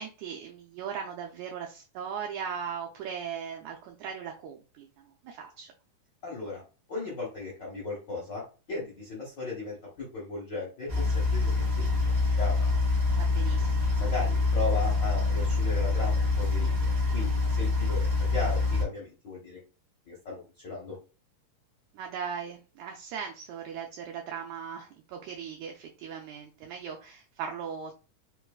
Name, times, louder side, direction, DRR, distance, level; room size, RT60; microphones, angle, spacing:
voice 1, 0.0-5.7 13.2-13.9 21.9-27.9, right 7 dB, 80° right, 2 dB, 1.7 m, -38 dB
voice 2, 6.2-6.6 6.9-8.4 8.7-11.7 12.3-12.7 14.0-19.6 20.1-20.9, left 3 dB, 65° left, -4 dB, 1.1 m, -36 dB
sound 1, 10.9-18.8, left 3 dB, 35° right, 1.5 m, -26 dB
4.4 x 3.5 x 2.3 m, 0.33 s
omnidirectional pair, 3.8 m